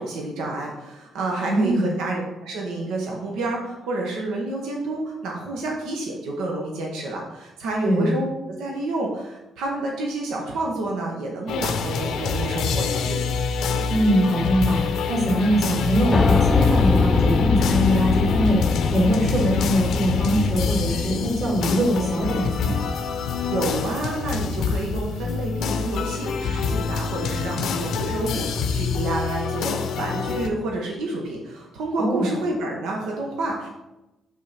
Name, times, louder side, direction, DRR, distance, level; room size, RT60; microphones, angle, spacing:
voice 1, 0.0-13.2 23.4-33.7, right 2 dB, 85° right, -1 dB, 1.3 m, -29 dB
voice 2, 1.4-1.9 7.8-8.1 13.9-22.7 32.0-32.3, equal, 45° right, -4 dB, 2.5 m, -22 dB
sound 1, 11.5-30.5, left 6 dB, 80° left, 0.7 m, -26 dB
Piano, 16.1-24.1, left 4 dB, 30° left, 0.6 m, -24 dB
6.2 x 3.8 x 5.8 m, 0.98 s
cardioid pair, 90°, 0 cm